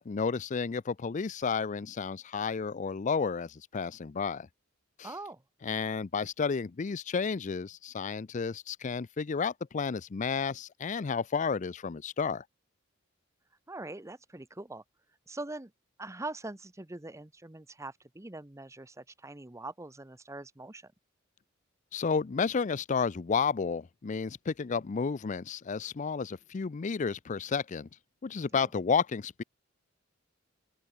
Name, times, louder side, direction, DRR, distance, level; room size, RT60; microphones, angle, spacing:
voice 1, 0.0-4.5 5.0-5.1 5.6-12.4 21.9-27.9 28.2-29.4, left 5 dB, 40° left, 0.4 m, -31 dB
voice 2, 5.0-5.4 13.7-14.8 15.3-15.7 16.0-20.9 28.5-28.7, right 2 dB, 15° right, 0.9 m, -43 dB
open air
head